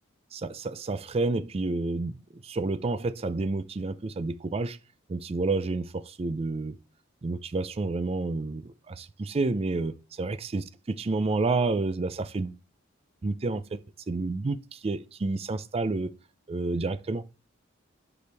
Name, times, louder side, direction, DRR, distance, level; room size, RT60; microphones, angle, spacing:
voice 1, 0.3-4.8 5.1-6.8 7.2-12.6 13.2-13.8 14.1-16.2 16.5-17.2, right 3 dB, 30° right, 0.4 m, -30 dB
9.3 x 4.9 x 3.4 m
head